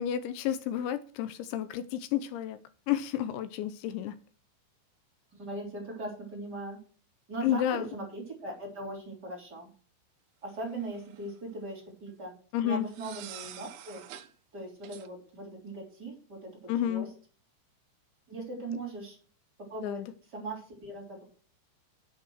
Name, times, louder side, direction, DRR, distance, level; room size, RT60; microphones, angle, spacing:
voice 1, 0.0-2.6 2.9-4.2 7.4-7.9 12.5-12.9 16.7-17.1 19.8-20.1, left 11 dB, 80° left, 2.9 m, -31 dB
voice 2, 5.3-6.8 7.3-9.7 10.4-12.3 12.6-14.0 14.5-17.1 18.3-19.2 19.7-20.0 20.3-21.2, right 2 dB, 20° right, 3.7 m, -39 dB
sound 1, 10.6-11.3 12.9-14.3 14.8-15.1, right 11 dB, 80° right, 3.3 m, -47 dB
9.4 x 8.5 x 6.4 m
omnidirectional pair, 5.7 m